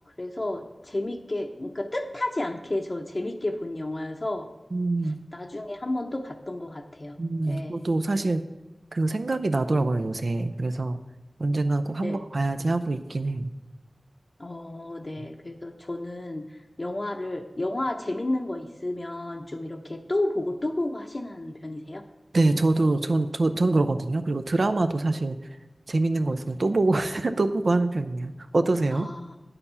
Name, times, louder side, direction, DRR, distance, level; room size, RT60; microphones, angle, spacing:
voice 1, 0.2-4.5 5.3-7.9 12.0-12.2 14.4-22.0 28.9-29.3, left 1 dB, 40° left, 1 dB, 0.7 m, -32 dB
voice 2, 4.7-5.2 7.2-8.4 8.9-11.0 11.4-13.5 15.2-15.3 22.3-25.4 25.9-29.1, right 2 dB, 75° right, 8 dB, 0.5 m, -25 dB
9.7 x 6.8 x 5.6 m, 1.0 s
wide cardioid pair, 65°, 0 cm